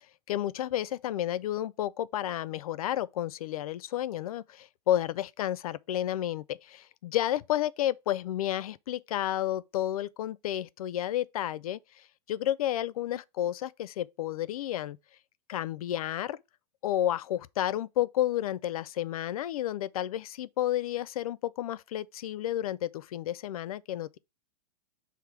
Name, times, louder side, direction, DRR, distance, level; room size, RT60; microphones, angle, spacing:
voice 1, 0.0-15.0 15.5-16.4 16.8-24.2, left 12 dB, 60° left, 0.4 m, -31 dB
5.8 x 3.5 x 4.7 m
supercardioid pair, 170°, 21 cm